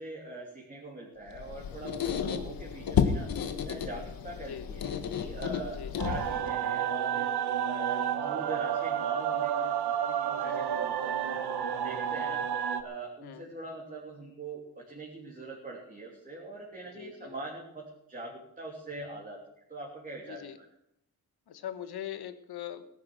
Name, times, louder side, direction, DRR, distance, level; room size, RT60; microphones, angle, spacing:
voice 1, 0.0-3.3 3.6-7.3 7.7-11.4 11.8-12.4 12.8-19.4 19.7-20.6, right 2 dB, 20° right, -3 dB, 3.1 m, -43 dB
Squeak, 1.3-6.5, left 7 dB, 65° left, 1.5 m, -32 dB
sound 1, 6.0-12.8, right 9 dB, 80° right, 1.4 m, -30 dB
voice 2, 10.4-10.8 13.2-13.5 16.9-17.3 20.3-20.6 21.5-22.9, left 10 dB, 80° left, 11 dB, 1.4 m, -41 dB
18.0 x 11.0 x 6.3 m, 0.78 s
wide cardioid pair, 160°, 38 cm